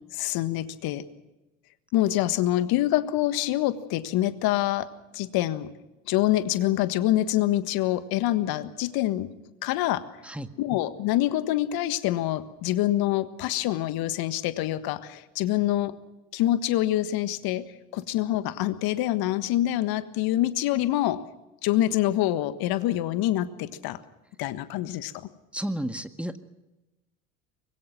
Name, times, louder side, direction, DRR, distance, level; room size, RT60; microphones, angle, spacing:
voice 1, 0.1-1.0 1.9-4.9 5.1-5.7 6.1-9.3 9.6-10.0 10.6-15.9 16.3-17.6 17.9-21.2 21.6-24.0 24.4-25.1, left 14 dB, 60° left, 12 dB, 1.6 m, -25 dB
voice 2, 25.5-26.4, right 1 dB, 5° right, 8 dB, 1.8 m, -32 dB
24.5 x 22.0 x 6.2 m, 1.0 s
hypercardioid pair, 60°, 41 cm